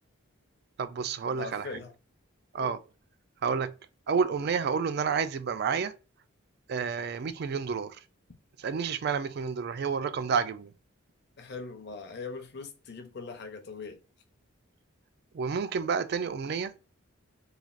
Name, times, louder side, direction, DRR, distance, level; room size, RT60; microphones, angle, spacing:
voice 1, 0.8-1.7 2.5-2.8 3.4-3.7 4.1-5.9 6.7-8.0 8.6-10.7 15.3-16.7, right 6 dB, 50° right, 0.3 m, -30 dB
voice 2, 1.3-1.9 2.6-2.8 11.4-14.0, left 4 dB, 50° left, 0.6 m, -41 dB
3.2 x 2.3 x 2.4 m
head